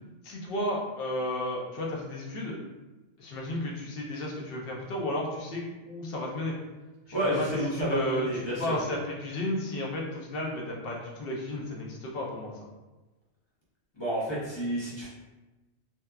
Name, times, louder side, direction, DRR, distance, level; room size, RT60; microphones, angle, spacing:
voice 1, 0.2-2.6 3.2-6.5 7.1-12.5 14.4-14.5, left 1 dB, 60° left, -2 dB, 0.8 m, -33 dB
voice 2, 7.1-8.7 14.0-15.1, right 1 dB, 35° left, -7 dB, 0.4 m, -30 dB
2.8 x 2.3 x 2.2 m, 1.1 s
omnidirectional pair, 1.2 m